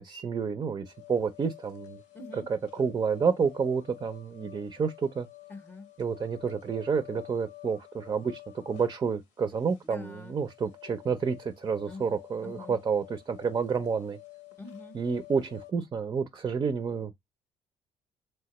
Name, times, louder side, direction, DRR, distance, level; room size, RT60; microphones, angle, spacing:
voice 1, 0.0-2.0 2.7-5.3 6.0-8.4 8.7-14.2 14.9-17.1, right 6 dB, 30° right, 0.4 m, -29 dB
sound 1, 0.8-15.7, left 19 dB, 85° left, 0.8 m, -50 dB
voice 2, 2.1-2.5 5.5-5.9 9.8-10.4 11.9-12.0 12.4-12.8 14.6-15.0, left 3 dB, 15° left, 0.6 m, -44 dB
3.2 x 2.0 x 2.9 m
supercardioid pair, 75°, 12 cm